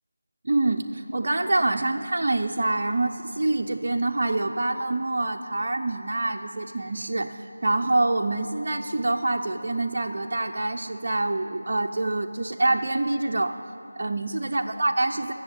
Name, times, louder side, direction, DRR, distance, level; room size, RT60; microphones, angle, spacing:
voice 1, 0.4-13.6 14.0-15.3, right 2 dB, 50° right, 2 dB, 0.6 m, -26 dB
15.5 x 7.2 x 9.0 m, 2.7 s
figure-of-eight pair, 165°, 0 cm